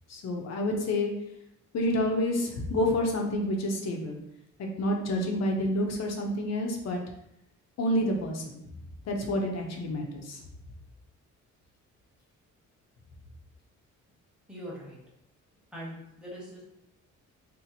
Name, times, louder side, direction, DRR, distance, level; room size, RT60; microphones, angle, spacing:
voice 1, 0.1-1.1 1.7-4.2 4.8-7.0 7.8-8.4 9.1-10.4, left 1 dB, 55° left, 2 dB, 0.7 m, -28 dB
voice 2, 14.5-15.0 15.7-16.6, equal, 5° right, -6 dB, 1.0 m, -41 dB
2.8 x 2.0 x 4.0 m, 0.80 s
cardioid pair, 130°, 31 cm